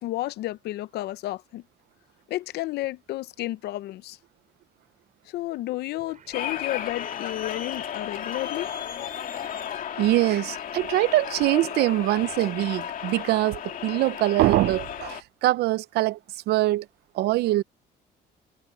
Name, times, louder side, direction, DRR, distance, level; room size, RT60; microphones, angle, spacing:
voice 1, 0.0-1.6 2.3-4.2 5.3-8.7, left 16 dB, 75° left, 0.7 m, -32 dB
sound 1, 6.0-11.4, right 9 dB, 50° right, 7.8 m, -54 dB
sound 2, 6.3-15.2, left 9 dB, 55° left, 2.5 m, -34 dB
voice 2, 10.0-16.2 16.5-16.9 17.1-17.6, right 16 dB, 75° right, 0.8 m, -23 dB
cardioid pair, 110°, 17 cm